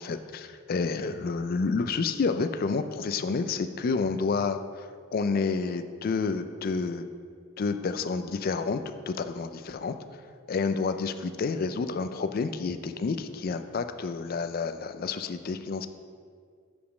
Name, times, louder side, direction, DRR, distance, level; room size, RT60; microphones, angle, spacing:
voice 1, 0.0-4.6 5.1-7.1 7.6-9.9 10.5-15.9, left 4 dB, 45° left, 9 dB, 0.3 m, -29 dB
5.1 x 5.0 x 6.2 m, 2.1 s
head